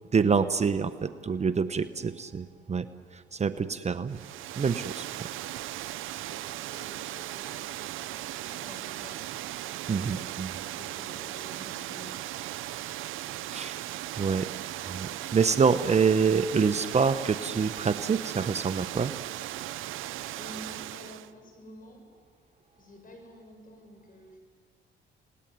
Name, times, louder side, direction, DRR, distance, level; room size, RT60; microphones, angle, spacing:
voice 1, 0.1-2.9 3.1-4.2 4.6-5.3 9.9-10.5 13.5-13.8 14.2-14.5 14.8-19.1, right 5 dB, 35° right, 10 dB, 1.0 m, -26 dB
voice 2, 1.7-2.1 3.6-3.9 6.3-9.2 9.9-10.5 10.7-12.3 13.2-13.7 14.5-14.7 20.4-22.1 22.8-24.4, left 1 dB, 45° left, 4 dB, 7.1 m, -50 dB
Water, 4.1-21.3, right 14 dB, 90° right, 0.7 m, -37 dB
29.5 x 19.5 x 9.5 m, 2.1 s
cardioid pair, 90°, 20 cm